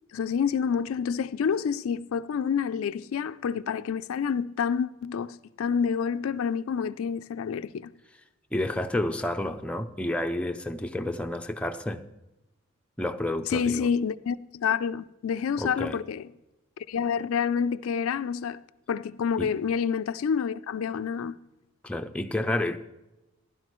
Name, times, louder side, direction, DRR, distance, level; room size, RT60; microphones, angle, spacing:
voice 1, 0.1-7.9 13.5-16.3 16.8-18.6 18.9-21.4, left 7 dB, 85° left, 0.4 m, -28 dB
voice 2, 8.5-12.0 13.0-13.9 15.6-16.0 19.4-19.5 21.8-22.8, left 1 dB, 5° left, 0.4 m, -30 dB
15.5 x 11.5 x 3.0 m
head